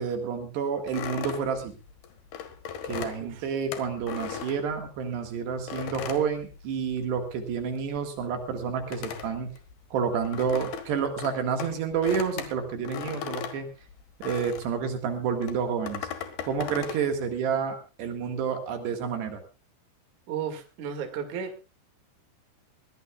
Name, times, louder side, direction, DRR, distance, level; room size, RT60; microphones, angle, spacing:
voice 1, 0.0-1.8 2.8-9.5 9.9-13.7 14.2-16.1 16.4-19.4, right 6 dB, 70° right, 5 dB, 3.9 m, -29 dB
sound 1, 0.9-5.2 5.7-7.2 7.4-14.8 15.4-17.1, left 8 dB, 65° left, 3.4 m, -38 dB
voice 2, 20.3-21.5, right 7 dB, 50° right, 5 dB, 3.1 m, -34 dB
22.0 x 18.0 x 2.4 m, 0.30 s
omnidirectional pair, 5.1 m